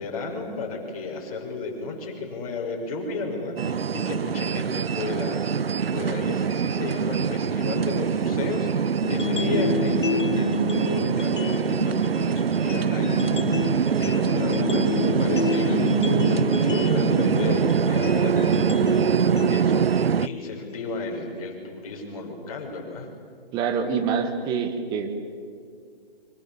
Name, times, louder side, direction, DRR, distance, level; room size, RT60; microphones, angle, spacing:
voice 1, 0.0-13.5 14.0-15.9 16.2-23.1, left 3 dB, 35° left, 0 dB, 6.0 m, -34 dB
sound 1, 3.6-20.3, right 7 dB, 75° right, 0.6 m, -24 dB
sound 2, 9.0-21.0, left 4 dB, 55° left, 1.9 m, -29 dB
voice 2, 23.5-25.1, right 6 dB, 15° right, 7 dB, 1.5 m, -26 dB
29.0 x 24.5 x 7.2 m, 2.2 s
figure-of-eight pair, 145°, 30 cm